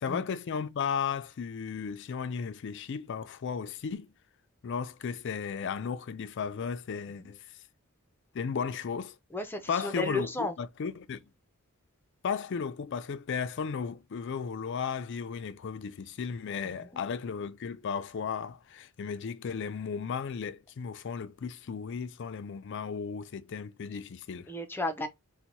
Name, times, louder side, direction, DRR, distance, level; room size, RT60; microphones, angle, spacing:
voice 1, 0.0-4.1 4.6-7.6 8.3-9.2 9.7-11.2 12.2-24.5, left 6 dB, 55° left, 0.4 m, -35 dB
voice 2, 9.3-10.5 16.6-16.7 24.5-25.1, left 2 dB, 10° left, 0.6 m, -33 dB
4.5 x 2.2 x 4.0 m
head